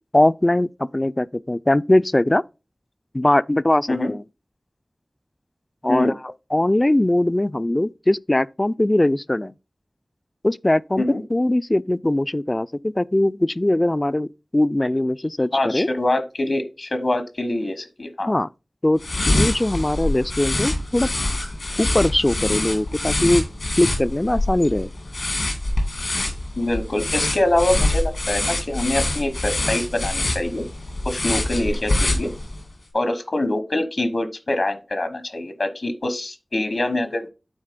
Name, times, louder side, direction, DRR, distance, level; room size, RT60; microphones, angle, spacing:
voice 1, 0.1-2.4 3.1-4.2 5.8-6.1 6.5-9.5 10.4-11.0 11.3-15.9 18.3-18.5 18.8-19.0 19.3-21.1 21.8-23.5 23.8-24.9, left 1 dB, 30° left, 0.3 m, -20 dB
voice 2, 15.5-18.3 26.6-30.6 31.0-32.3 32.9-37.3, left 1 dB, 70° left, 1.1 m, -24 dB
sound 1, 19.0-32.7, left 2 dB, 90° left, 2.3 m, -25 dB
9.0 x 3.6 x 5.0 m
wide cardioid pair, 45°, 0 cm